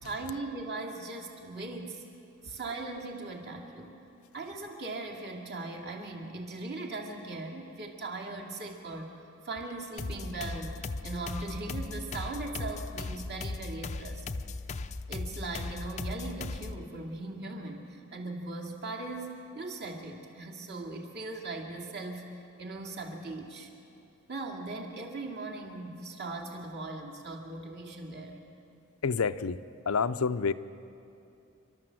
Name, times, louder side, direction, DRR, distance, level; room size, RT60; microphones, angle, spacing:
voice 1, 0.0-2.0 2.4-3.9 4.3-9.2 9.4-14.2 15.1-22.3 22.6-23.7 24.3-28.4, right 2 dB, 50° right, 1 dB, 2.4 m, -39 dB
sound 1, 10.0-16.8, left 3 dB, 30° left, 0.5 m, -38 dB
voice 2, 29.0-29.6 29.9-30.5, left 5 dB, 85° left, 12 dB, 0.6 m, -28 dB
28.5 x 12.5 x 7.7 m, 2.7 s
head